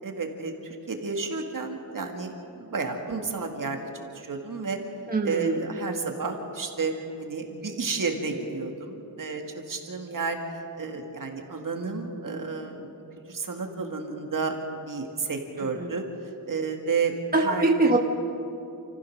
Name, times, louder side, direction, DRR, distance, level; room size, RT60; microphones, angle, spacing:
voice 1, 0.0-3.8 4.1-4.8 5.2-10.4 10.8-12.9 13.3-16.0 16.5-18.0, right 4 dB, 55° right, 3 dB, 2.1 m, -31 dB
voice 2, 5.1-5.6 15.8-15.9 17.3-18.0, right 2 dB, 20° right, 0 dB, 1.4 m, -22 dB
29.0 x 14.5 x 6.6 m, 2.8 s
wide cardioid pair, 130°, 39 cm